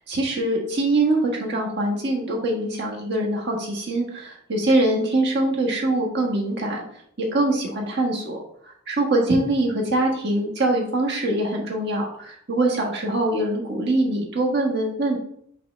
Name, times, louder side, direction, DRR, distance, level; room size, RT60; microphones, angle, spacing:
voice 1, 0.0-6.8 7.2-8.4 8.9-15.2, right 2 dB, 50° right, -1 dB, 1.5 m, -23 dB
5.8 x 3.3 x 5.2 m, 0.66 s
head